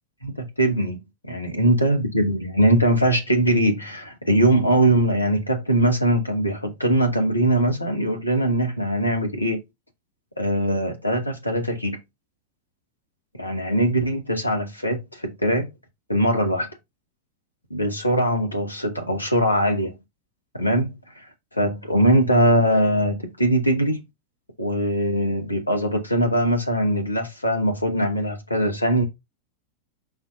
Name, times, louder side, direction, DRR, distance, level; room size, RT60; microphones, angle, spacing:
voice 1, 0.2-9.6 10.4-12.0 13.4-15.7 16.1-16.7 17.7-19.9 20.5-20.9 21.5-24.0 24.6-29.0, right 1 dB, 85° left, 2.0 m, -21 dB
5.8 x 4.2 x 5.3 m
figure-of-eight pair, 90°, 0 cm